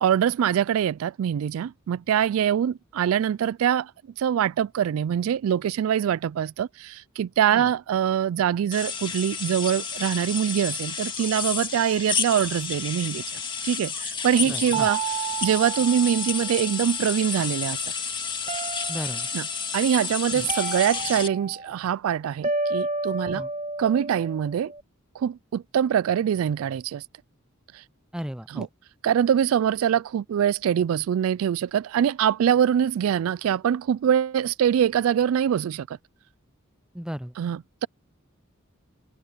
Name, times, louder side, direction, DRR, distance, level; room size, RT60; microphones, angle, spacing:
voice 1, 0.0-3.9 4.2-17.8 19.3-19.5 19.7-23.4 23.8-24.7 25.2-27.0 27.7-27.8 28.5-28.7 29.0-36.0 37.4-37.9, right 9 dB, 80° right, 0.3 m, -24 dB
sound 1, 8.7-21.3, left 6 dB, 25° left, 1.9 m, -31 dB
voice 2, 14.4-14.9 18.9-19.3 20.3-20.5 23.3-23.5 28.1-28.7 36.9-37.3, equal, 5° right, 0.5 m, -34 dB
sound 2, 14.7-17.1 18.5-19.5 20.5-21.8 22.4-24.8, right 4 dB, 30° right, 2.1 m, -31 dB
open air
head